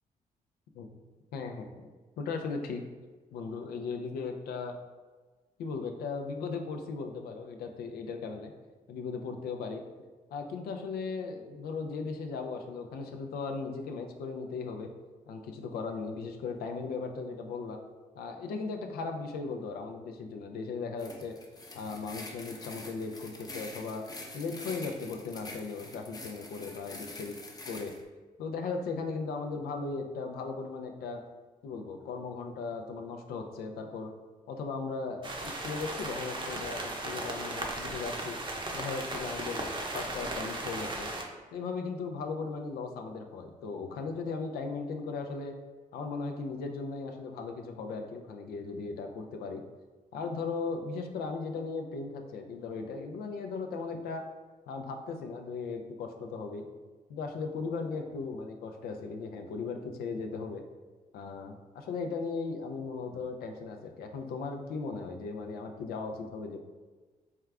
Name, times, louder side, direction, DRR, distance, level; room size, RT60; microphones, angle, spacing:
voice 1, 1.3-1.7 2.2-2.8 3.3-4.8 5.6-8.5 8.9-9.8 10.3-14.9 15.3-17.8 18.2-21.4 21.7-24.0 24.3-27.4 27.6-27.9 28.4-31.2 31.6-34.1 34.5-38.4 38.7-41.1 41.5-45.6 45.9-49.6 50.1-54.2 54.7-56.6 57.1-60.6 61.1-66.6, left 4 dB, 90° left, 4 dB, 0.4 m, -37 dB
sound 1, 21.0-28.0, left 2 dB, 25° left, 0.6 m, -46 dB
sound 2, 35.2-41.2, right 2 dB, 30° right, 0.7 m, -36 dB
4.4 x 2.4 x 3.3 m, 1.3 s
cardioid pair, 60°, 16 cm